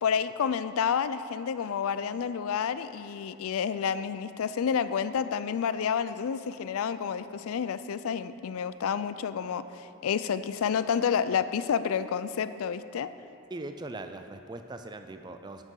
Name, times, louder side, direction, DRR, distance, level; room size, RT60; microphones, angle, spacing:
voice 1, 0.0-13.1, left 7 dB, 80° left, 13 dB, 0.4 m, -29 dB
voice 2, 13.5-15.6, right 2 dB, 20° right, 7 dB, 0.4 m, -40 dB
10.5 x 8.1 x 3.8 m, 2.7 s
head